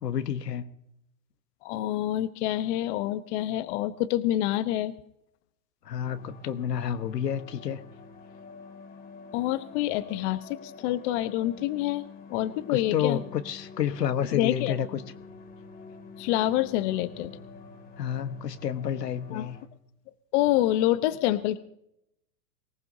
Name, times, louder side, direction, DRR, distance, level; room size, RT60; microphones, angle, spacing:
voice 1, 0.0-0.6 5.9-7.8 12.7-14.9 18.0-19.6, left 9 dB, 85° left, 9 dB, 1.4 m, -30 dB
voice 2, 1.6-4.9 9.3-12.0 12.3-13.2 14.3-14.8 16.2-17.3 19.3-19.5 20.3-21.6, left 14 dB, 45° left, 11 dB, 1.0 m, -27 dB
sound 1, 6.0-19.7, left 4 dB, 20° left, 2.7 m, -47 dB
24.0 x 18.5 x 2.7 m, 0.78 s
hypercardioid pair, 120°, 47 cm